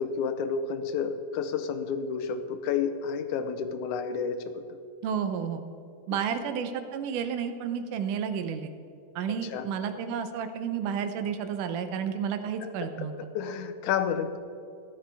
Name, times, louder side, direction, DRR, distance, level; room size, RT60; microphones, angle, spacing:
voice 1, 0.0-4.6 9.5-9.7 12.6-12.7 13.3-14.4, left 6 dB, 75° left, 8 dB, 2.0 m, -30 dB
voice 2, 5.0-5.6 6.1-8.7 9.2-13.1, right 7 dB, 80° right, 8 dB, 2.2 m, -31 dB
14.5 x 11.0 x 3.4 m, 2.5 s
omnidirectional pair, 3.8 m